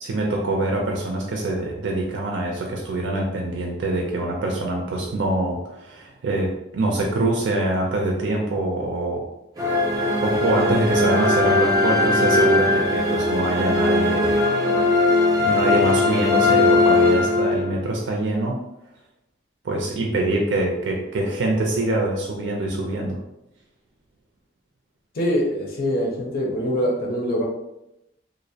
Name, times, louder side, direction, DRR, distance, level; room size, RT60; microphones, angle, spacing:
voice 1, 0.0-9.2 9.9-14.7 15.4-18.6 19.6-23.2, right 2 dB, 90° right, 0 dB, 0.4 m, -24 dB
sound 1, 9.6-17.9, left 2 dB, 20° right, 0.4 m, -19 dB
voice 2, 25.1-27.5, equal, 55° left, -1 dB, 0.6 m, -24 dB
2.4 x 2.0 x 2.6 m, 0.88 s
head